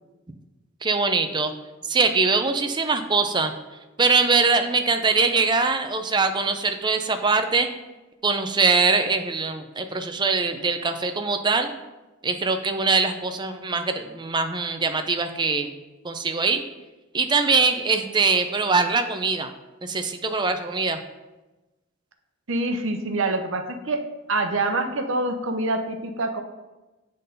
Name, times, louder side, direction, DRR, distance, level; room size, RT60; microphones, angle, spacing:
voice 1, 0.8-1.5 1.8-3.5 4.0-7.7 8.2-11.8 12.2-15.7 16.0-16.6 17.1-19.5 19.8-21.0, right 4 dB, 20° right, 7 dB, 0.5 m, -22 dB
voice 2, 22.5-24.0 24.3-26.4, right 2 dB, 70° right, 6 dB, 0.8 m, -25 dB
7.8 x 3.9 x 5.3 m, 1.1 s
head